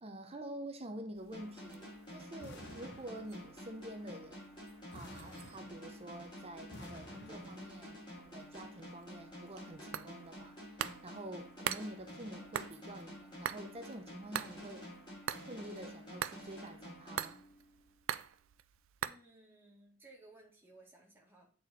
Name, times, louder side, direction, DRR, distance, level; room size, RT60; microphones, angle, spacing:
voice 1, 0.0-4.4 4.9-14.9 15.4-17.4, right 1 dB, 25° right, 0.7 m, -48 dB
sound 1, 1.1-19.1, right 9 dB, 65° right, 0.4 m, -46 dB
sound 2, 1.3-17.9, equal, 20° left, 3.0 m, -50 dB
sound 3, 2.4-3.7 4.9-6.2 6.7-7.8, left 2 dB, 55° left, 1.0 m, -53 dB
voice 2, 19.0-21.5, right 2 dB, 10° right, 1.9 m, -59 dB
8.1 x 4.5 x 4.2 m
head